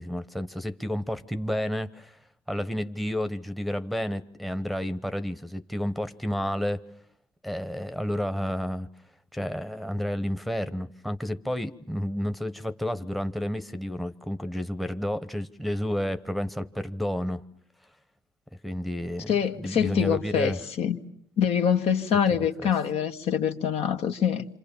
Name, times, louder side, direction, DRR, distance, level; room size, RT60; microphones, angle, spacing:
voice 1, 0.0-2.2 2.5-6.8 7.4-8.9 9.3-17.5 18.6-20.6 22.3-22.7, equal, ahead, 1.0 m, -31 dB
voice 2, 19.3-21.0 21.4-24.5, left 8 dB, 65° left, 1.6 m, -25 dB
27.0 x 27.0 x 7.1 m
cardioid pair, 90°, 11 cm